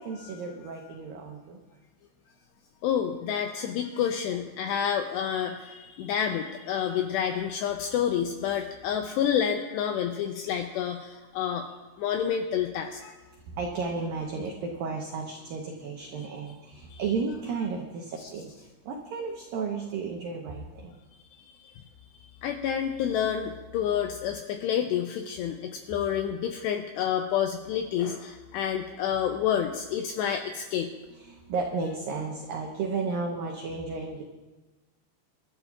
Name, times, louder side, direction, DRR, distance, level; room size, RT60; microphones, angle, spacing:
voice 1, 0.0-1.6 13.5-18.5 18.9-21.0 31.2-34.2, right 4 dB, 85° right, 1 dB, 2.0 m, -33 dB
voice 2, 2.8-11.7 12.0-13.2 16.9-17.0 18.2-18.3 22.4-30.9, left 9 dB, 85° left, 5 dB, 2.4 m, -29 dB
27.0 x 12.0 x 2.4 m, 1.2 s
omnidirectional pair, 5.6 m